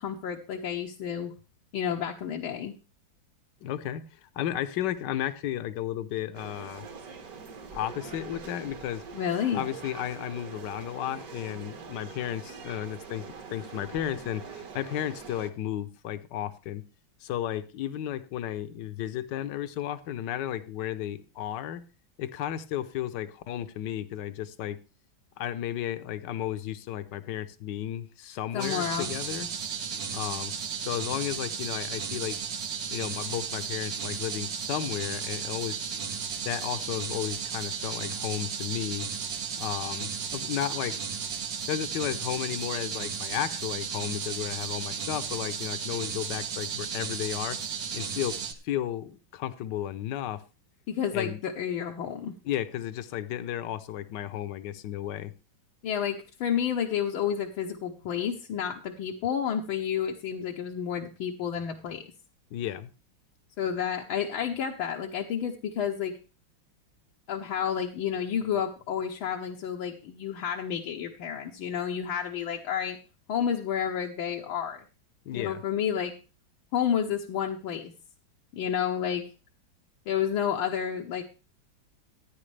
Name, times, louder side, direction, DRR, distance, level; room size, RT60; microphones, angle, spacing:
voice 1, 0.0-1.3 1.7-2.7 9.1-9.6 28.5-29.1 50.9-52.3 55.8-62.0 63.6-66.2 67.3-73.0 73.3-74.8 75.3-76.1 76.7-77.9 78.5-79.2 80.1-81.2, left 8 dB, 80° left, 1 dB, 1.7 m, -30 dB
voice 2, 3.6-6.9 7.7-9.0 9.5-13.2 13.5-16.8 17.2-21.8 22.2-24.8 25.4-29.5 30.1-30.5 30.8-32.4 32.9-36.0 36.4-39.1 39.6-40.9 41.7-47.6 47.9-48.3 48.6-50.4 51.1-51.4 52.4-55.3 62.5-62.9 75.2-75.6, left 11 dB, 65° left, 12 dB, 1.3 m, -33 dB
sound 1, 6.3-15.5, right 5 dB, 50° right, 1.7 m, -43 dB
sound 2, 28.6-48.5, right 6 dB, 70° right, 1.9 m, -34 dB
15.0 x 9.5 x 3.3 m, 0.32 s
omnidirectional pair, 2.2 m